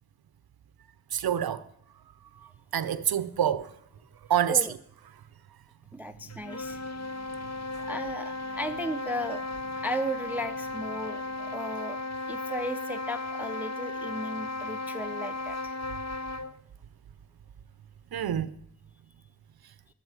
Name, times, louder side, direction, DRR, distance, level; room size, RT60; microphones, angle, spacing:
voice 1, 1.1-1.6 2.7-3.7 4.3-4.6 18.1-18.5, right 9 dB, 70° right, 0.6 m, -26 dB
voice 2, 5.9-6.8 7.8-9.4 9.8-12.0 12.3-15.8, equal, 5° right, 0.4 m, -35 dB
sound 1, 6.0-11.5, equal, 75° left, 3.0 m, -55 dB
sound 2, 6.3-16.6, left 2 dB, 45° left, 0.7 m, -35 dB
11.5 x 8.8 x 4.7 m
cardioid pair, 55°, 39 cm